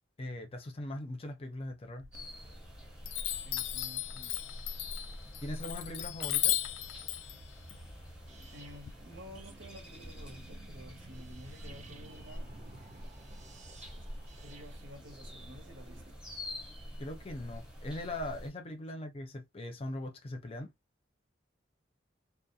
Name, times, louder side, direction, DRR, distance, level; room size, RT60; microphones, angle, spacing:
voice 1, 0.2-2.1 5.4-6.6 17.0-20.7, left 1 dB, 30° left, 0.5 m, -40 dB
Chime, 2.0-2.7 3.0-8.9, left 13 dB, 85° left, 0.3 m, -36 dB
sound 1, 2.1-18.5, equal, 5° right, 0.8 m, -47 dB
voice 2, 3.3-4.4 8.5-12.5 14.4-16.3, equal, 75° right, 0.8 m, -52 dB
sound 2, 8.3-16.1, right 3 dB, 35° right, 0.5 m, -55 dB
2.4 x 2.0 x 2.6 m
head